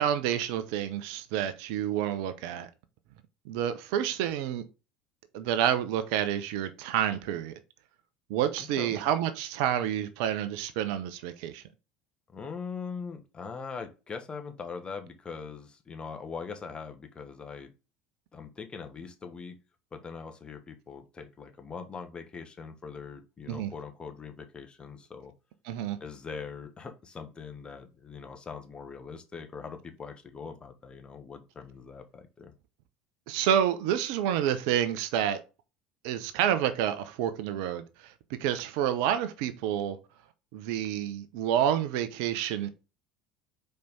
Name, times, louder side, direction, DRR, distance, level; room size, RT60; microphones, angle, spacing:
voice 1, 0.0-2.7 3.5-4.6 5.3-7.6 8.3-11.6 23.5-23.7 25.6-26.0 33.3-35.4 36.0-40.0 40.5-42.7, right 10 dB, 60° right, 0.7 m, -29 dB
voice 2, 12.3-17.7 18.3-19.6 19.9-25.3 26.0-32.5, left 5 dB, 25° left, 1.2 m, -41 dB
5.3 x 4.5 x 4.0 m
figure-of-eight pair, 70°, 4 cm